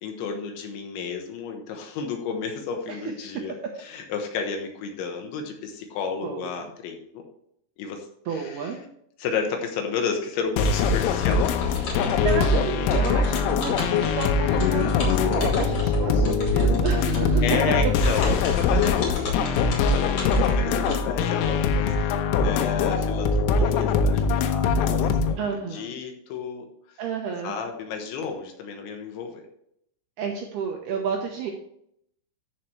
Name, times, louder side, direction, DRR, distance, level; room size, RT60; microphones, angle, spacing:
voice 1, 0.0-3.5 3.8-7.2 7.8-8.7 9.2-11.7 13.3-14.0 17.4-25.4 25.7-26.7 27.4-29.4, left 5 dB, 75° left, 3 dB, 3.4 m, -32 dB
voice 2, 6.2-6.7 8.3-8.8 11.8-17.4 25.4-25.9 27.0-27.5 30.2-31.5, right 6 dB, 75° right, 1 dB, 2.5 m, -31 dB
sound 1, 10.6-25.3, left 4 dB, 90° left, 3.6 m, -22 dB
sound 2, 10.7-20.9, left 4 dB, 40° left, 2.6 m, -33 dB
13.5 x 5.8 x 3.2 m, 0.71 s
omnidirectional pair, 5.7 m